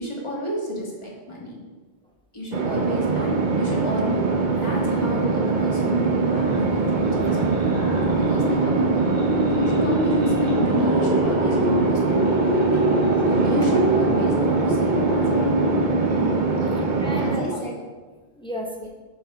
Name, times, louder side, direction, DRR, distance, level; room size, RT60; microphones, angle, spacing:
voice 1, 0.0-1.6 2.3-4.2 4.6-9.2 9.5-12.9 13.4-15.6 16.6-16.8 17.2-17.7 18.8-18.9, equal, 25° left, -4 dB, 1.6 m, -31 dB
sound 1, 2.5-17.4, right 3 dB, 50° right, 0.8 m, -23 dB
sound 2, 6.2-17.4, equal, 15° right, 1.8 m, -25 dB
voice 2, 16.0-17.6 18.4-18.9, right 1 dB, 5° left, 1 dB, 0.6 m, -34 dB
7.2 x 5.5 x 3.4 m, 1.4 s
omnidirectional pair, 1.1 m